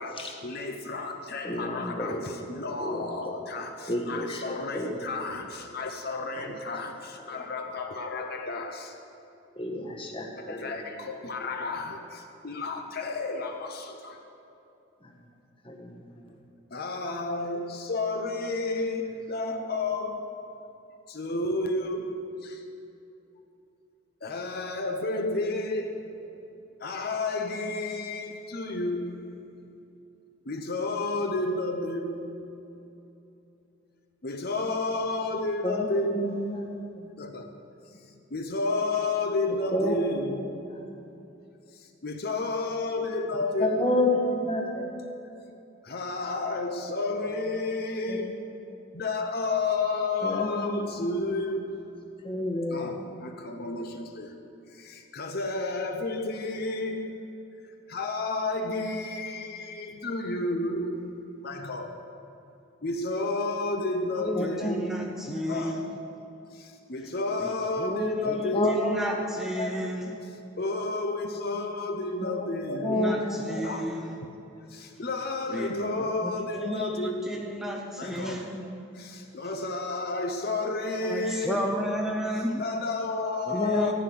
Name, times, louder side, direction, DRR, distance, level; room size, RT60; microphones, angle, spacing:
voice 1, 0.0-8.9 10.5-14.2 16.7-20.3 21.1-22.6 24.2-26.0 26.8-29.4 30.4-32.4 34.2-36.3 37.2-37.5 38.3-40.4 41.7-43.8 45.8-48.4 48.9-51.8 52.7-54.3 54.7-57.2 57.6-61.1 61.4-62.0 62.8-64.8 65.5-65.9 66.5-68.9 70.6-73.0 73.6-73.9 74.7-77.4 78.0-78.4 78.9-81.7 82.6-83.9, left 2 dB, 45° left, 4 dB, 0.8 m, -31 dB
voice 2, 1.4-2.3 2.8-3.4 3.9-5.1 6.4-6.6 7.2-7.4 9.5-10.8 11.4-11.5 15.0-15.2 15.6-16.4 35.6-36.6 36.9-37.1 39.7-41.0 43.6-45.0 48.1-48.2 50.2-50.9 52.2-53.0 64.4-65.4 68.2-69.7 70.0-70.2 72.2-73.6 76.2-76.4 77.8-78.6 81.7-81.8 83.5-83.9, left 1 dB, 25° left, 1 dB, 1.4 m, -31 dB
voice 3, 64.2-65.9 66.2-66.3 67.4-70.1 72.9-74.2 75.5-75.7 76.0-76.1 76.5-78.7 81.0-82.6 83.5-83.9, equal, ahead, 0 dB, 0.7 m, -33 dB
14.5 x 6.0 x 9.3 m, 2.8 s
head